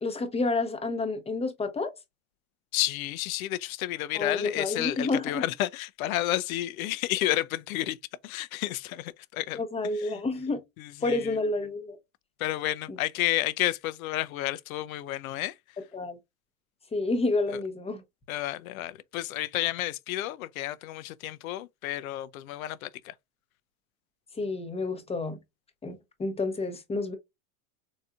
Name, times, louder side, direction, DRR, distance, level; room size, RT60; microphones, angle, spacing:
voice 1, 0.0-1.9 4.1-5.4 9.5-10.6 11.0-12.0 12.9-13.0 15.9-16.2 16.9-18.0 24.4-25.4 25.8-27.1, left 3 dB, 15° left, 0.7 m, -29 dB
voice 2, 2.7-8.0 8.2-9.6 10.0-10.2 10.8-11.4 12.4-15.5 17.5-17.6 18.3-23.1, left 15 dB, 80° left, 0.5 m, -31 dB
4.0 x 2.7 x 2.4 m
supercardioid pair, 115°, 41 cm